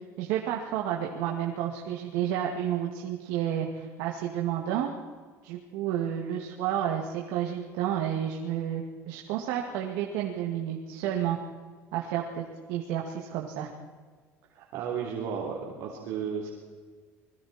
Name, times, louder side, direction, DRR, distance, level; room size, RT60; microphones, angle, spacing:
voice 1, 0.2-4.9 5.4-11.4 11.9-13.7, right 10 dB, 80° right, 1 dB, 2.2 m, -31 dB
voice 2, 14.5-16.5, right 7 dB, 60° right, -2 dB, 3.7 m, -34 dB
28.5 x 21.5 x 4.4 m, 1.5 s
cardioid pair, 170°, 6 cm